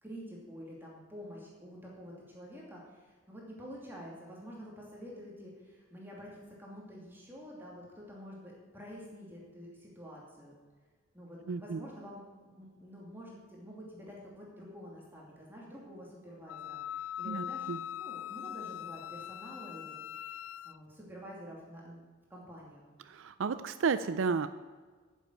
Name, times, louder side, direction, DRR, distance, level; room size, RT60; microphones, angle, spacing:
voice 1, 0.0-10.6 11.1-19.9 20.6-22.0 22.3-22.8, equal, 10° right, -4 dB, 2.6 m, -48 dB
voice 2, 11.5-11.8 17.3-17.8 23.1-24.5, right 5 dB, 75° right, 12 dB, 0.4 m, -32 dB
Wind instrument woodwind instrument, 16.5-20.8, left 11 dB, 85° left, 0.3 m, -41 dB
10.5 x 7.5 x 9.1 m, 1.4 s
head